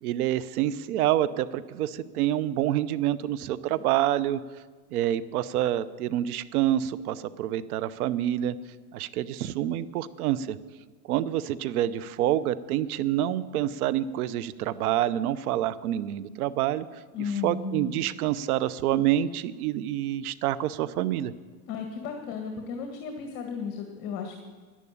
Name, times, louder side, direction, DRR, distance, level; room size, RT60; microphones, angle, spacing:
voice 1, 0.0-4.4 4.9-8.5 8.9-10.6 11.1-16.9 17.4-21.3, right 12 dB, 75° right, 17 dB, 0.8 m, -27 dB
voice 2, 17.1-17.9 21.7-24.4, left 5 dB, 45° left, 4 dB, 1.8 m, -34 dB
11.5 x 11.0 x 8.7 m, 1.4 s
supercardioid pair, 135°, 44 cm